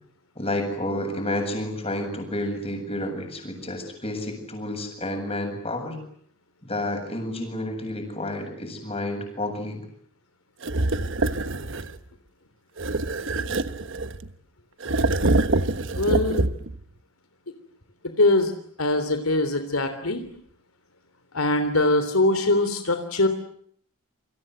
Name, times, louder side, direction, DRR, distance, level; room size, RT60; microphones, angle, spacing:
voice 1, 0.4-6.0 6.6-9.9, left 1 dB, 30° left, 4 dB, 7.9 m, -30 dB
sound 1, 10.6-12.0 12.8-14.3 14.8-16.8, right 2 dB, 60° right, 1.3 m, -25 dB
voice 2, 16.0-16.5 18.2-18.5 18.8-20.2 21.3-23.3, left 2 dB, 80° left, 8 dB, 3.4 m, -22 dB
29.0 x 25.5 x 8.0 m, 0.63 s
head